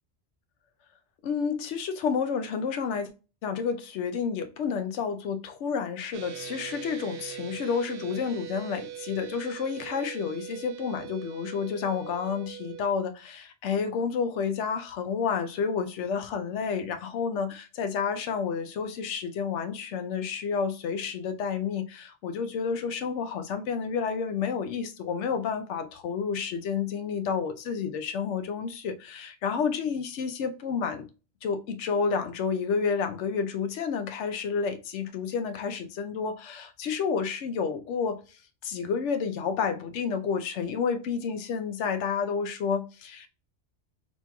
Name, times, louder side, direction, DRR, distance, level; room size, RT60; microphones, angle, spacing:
voice 1, 1.2-3.1 3.4-31.1 31.4-38.2 38.6-43.3, left 6 dB, 85° left, 0.9 m, -30 dB
sound 1, 6.1-12.8, right 11 dB, 60° right, 0.7 m, -41 dB
5.8 x 2.9 x 2.2 m
omnidirectional pair, 1.2 m